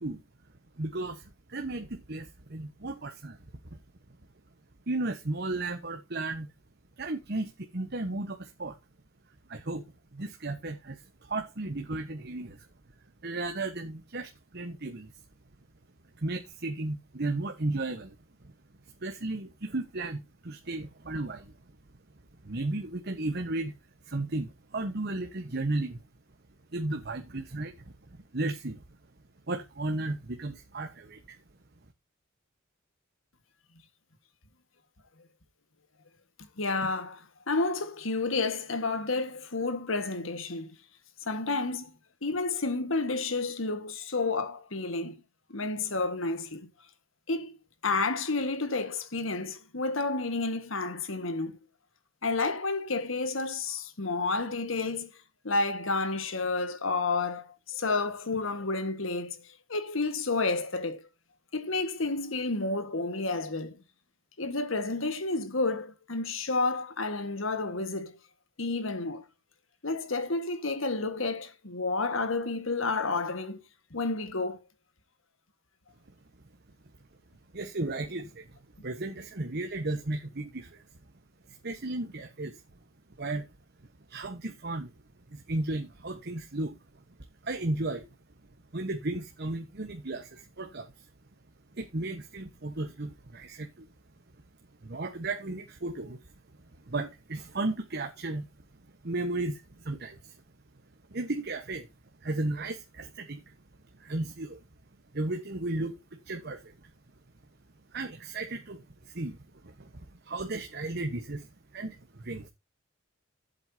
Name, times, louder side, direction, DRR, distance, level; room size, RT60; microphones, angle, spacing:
voice 1, 0.8-3.4 3.7-3.8 4.9-6.5 7.0-8.8 9.5-12.7 13.2-15.1 16.2-18.1 18.4-18.5 19.0-21.6 22.4-23.7 24.0-26.0 26.7-27.9 28.3-28.8 29.5-31.4 77.5-80.8 81.5-82.6 83.2-83.5 84.1-84.9 85.3-86.8 87.4-88.1 88.7-91.1 91.7-93.9 94.8-96.2 96.9-98.5 99.0-100.4 101.1-101.9 102.2-103.4 104.0-104.6 105.1-106.9 107.9-112.5, right 2 dB, 55° right, 1.3 m, -34 dB
voice 2, 36.6-40.7 41.2-41.9 42.2-45.2 45.5-46.7 47.3-47.6 47.8-51.6 52.2-55.1 55.4-59.4 59.7-61.0 61.5-63.8 64.4-68.1 68.6-69.2 69.8-73.6 73.9-74.6, left 3 dB, 75° left, 1.7 m, -30 dB
14.5 x 8.0 x 2.8 m
head